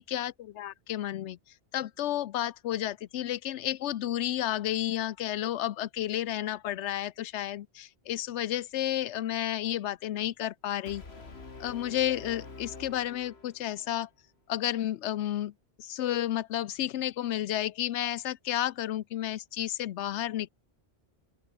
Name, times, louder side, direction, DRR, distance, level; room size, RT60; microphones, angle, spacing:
voice 1, 0.0-1.4 1.7-11.0 11.6-14.1 14.5-15.5 15.8-20.5, left 12 dB, 90° left, 0.9 m, -31 dB
Brass instrument, 10.9-13.9, left 3 dB, 65° left, 2.6 m, -46 dB
open air
omnidirectional pair, 1.1 m